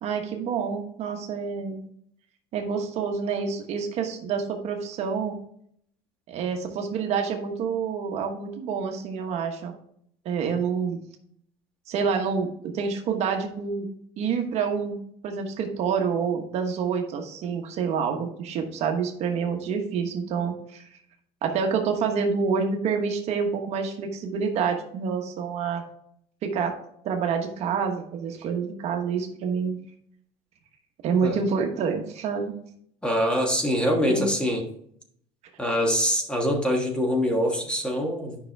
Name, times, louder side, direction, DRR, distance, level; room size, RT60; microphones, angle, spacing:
voice 1, 0.0-1.8 2.5-5.4 6.3-9.7 10.2-11.0 11.9-13.9 14.2-20.9 21.4-25.8 26.4-26.7 27.0-29.8 31.0-32.5 34.1-34.3, right 6 dB, 50° right, 4 dB, 1.2 m, -27 dB
voice 2, 33.0-34.6 35.6-38.4, equal, 5° left, 1 dB, 1.5 m, -24 dB
9.6 x 5.7 x 3.5 m, 0.68 s
cardioid pair, 135°, 14 cm